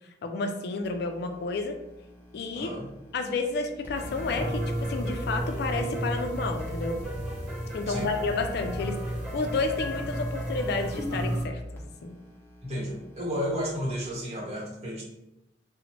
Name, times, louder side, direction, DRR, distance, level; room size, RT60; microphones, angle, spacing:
voice 1, 0.2-1.8 2.3-2.7 3.1-7.0 7.7-9.0 9.3-12.2, left 3 dB, 65° left, 5 dB, 0.3 m, -31 dB
sound 1, 0.8-14.1, left 1 dB, 10° left, 0.6 m, -43 dB
voice 2, 2.5-2.9 7.9-8.1 12.6-15.0, equal, 40° right, -4 dB, 0.9 m, -32 dB
sound 2, 3.9-11.0, equal, 5° right, 1.1 m, -44 dB
sound 3, 3.9-11.5, right 1 dB, 80° right, 0.8 m, -33 dB
2.8 x 2.0 x 2.9 m, 0.89 s
head